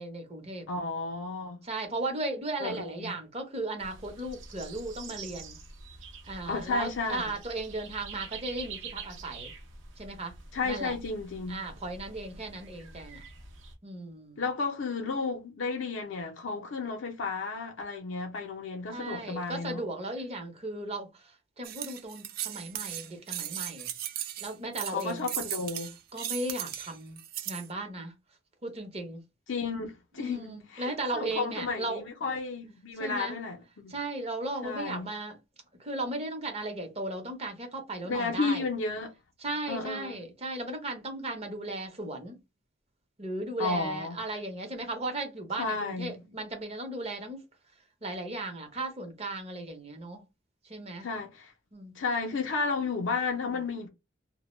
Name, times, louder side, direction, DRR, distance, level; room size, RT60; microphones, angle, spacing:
voice 1, 0.0-0.7 1.6-5.6 6.3-9.5 10.0-10.3 10.6-10.9 11.5-13.2 13.8-14.4 18.9-23.9 24.4-25.3 26.1-27.2 27.5-28.1 28.6-29.2 30.2-32.4 33.0-33.4 33.9-35.4 35.8-38.7 39.4-42.4 43.2-47.4 48.0-50.2 50.6-51.1 51.7-52.0 53.4-53.6, right 2 dB, 35° right, 0.7 m, -36 dB
voice 2, 0.7-1.6 2.6-3.1 6.5-7.2 10.5-11.6 14.4-19.8 24.9-25.9 29.5-33.9 34.6-35.1 38.0-39.1 39.7-40.2 43.6-44.2 45.6-46.2 51.0-51.5 52.0-53.9, left 4 dB, 75° left, 0.5 m, -33 dB
sound 1, 3.8-13.7, right 4 dB, 80° right, 0.7 m, -46 dB
sound 2, 21.6-27.7, right 12 dB, 50° right, 0.3 m, -37 dB
2.2 x 2.0 x 3.1 m
head